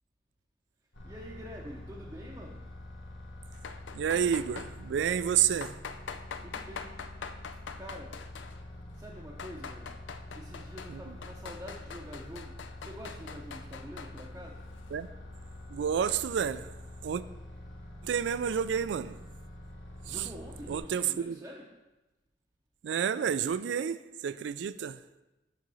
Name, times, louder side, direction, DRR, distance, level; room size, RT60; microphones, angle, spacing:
sound 1, 0.9-20.8, left 1 dB, 70° left, 1.5 m, -46 dB
voice 1, 1.0-2.6 6.4-6.9 7.8-8.2 8.9-10.0 10.3-14.6 20.0-21.7, equal, 15° right, -5 dB, 0.7 m, -46 dB
sound 2, 3.5-4.7 5.6-8.6 9.2-11.0 11.2-14.3, left 6 dB, 90° left, 0.5 m, -43 dB
voice 2, 3.9-5.7 14.9-15.1 15.7-16.7 17.0-17.2 18.0-19.1 20.1-20.2 20.7-21.4 22.8-24.0 24.2-25.0, right 8 dB, 75° right, 14 dB, 0.3 m, -29 dB
6.7 x 3.8 x 6.2 m, 1.0 s
head